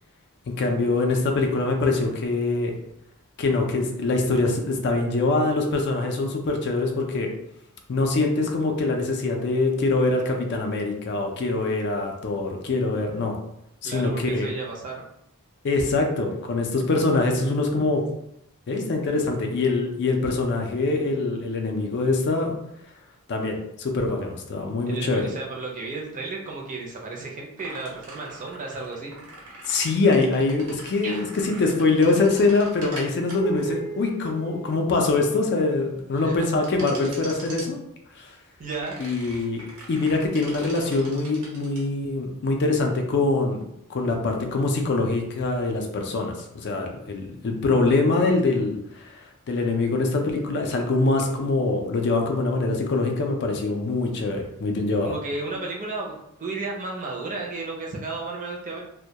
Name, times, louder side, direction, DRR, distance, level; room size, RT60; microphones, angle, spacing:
voice 1, 0.5-2.8 3.4-7.3 7.9-13.4 13.8-14.5 15.6-18.0 18.7-22.5 23.3-25.3 29.7-37.8 38.2-38.3 39.0-39.6 39.9-43.6 43.9-55.1, left 3 dB, 50° left, 3 dB, 0.4 m, -24 dB
voice 2, 13.8-15.0 18.8-18.9 24.9-29.1 31.0-31.2 36.1-36.5 37.0-37.2 38.6-39.0 55.0-56.1 56.4-58.8, right 3 dB, 35° right, -1 dB, 0.5 m, -33 dB
sound 1, 27.6-35.4 36.6-37.7 38.7-41.8, right 4 dB, 90° right, 0.9 m, -39 dB
2.2 x 2.1 x 2.7 m, 0.79 s
head